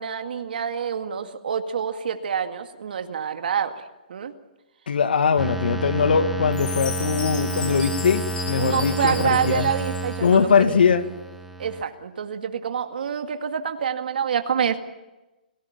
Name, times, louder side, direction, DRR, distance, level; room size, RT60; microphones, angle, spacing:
voice 1, 0.0-4.3 8.6-10.8 11.6-14.8, right 7 dB, 70° right, 6 dB, 2.1 m, -27 dB
voice 2, 4.9-9.7 10.2-11.1, left 6 dB, 75° left, 9 dB, 2.2 m, -21 dB
sound 1, 5.4-11.8, right 3 dB, 5° right, 2.0 m, -30 dB
Chime, 6.5-10.5, left 5 dB, 15° left, 4.2 m, -35 dB
30.0 x 18.0 x 7.2 m, 1.0 s
hypercardioid pair, 145°, 5 cm